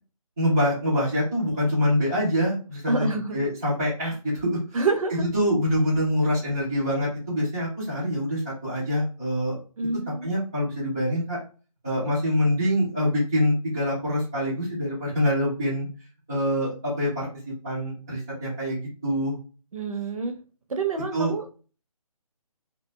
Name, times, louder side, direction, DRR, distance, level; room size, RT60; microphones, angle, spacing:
voice 1, 0.4-4.8 5.1-9.6 10.2-11.4 11.8-15.9 16.3-19.4 21.1-21.3, equal, 5° right, -10 dB, 0.4 m, -25 dB
voice 2, 2.9-3.4 4.7-5.3 9.8-10.3 19.7-20.3 20.7-21.6, right 3 dB, 65° right, 6 dB, 0.7 m, -27 dB
2.4 x 2.2 x 3.0 m, 0.36 s
figure-of-eight pair, 165°, 19 cm